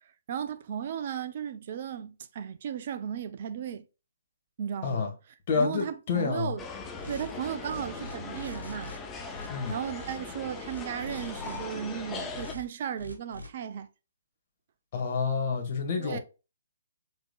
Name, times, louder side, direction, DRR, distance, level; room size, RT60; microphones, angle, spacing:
voice 1, 0.3-3.8 4.6-5.1 5.6-6.6 7.1-8.9 9.7-13.9 16.0-16.2, right 8 dB, 45° right, 0.7 m, -35 dB
voice 2, 5.5-6.5 9.5-9.8 14.9-16.2, left 5 dB, 40° left, 1.6 m, -28 dB
sound 1, 6.6-12.5, left 4 dB, 15° left, 0.7 m, -40 dB
sound 2, 7.0-7.3 7.6-9.0 9.3-10.2 10.6-11.6 12.3-12.6 13.0-13.5, left 2 dB, 85° right, 1.3 m, -44 dB
5.1 x 3.7 x 2.4 m
figure-of-eight pair, 130°, 0 cm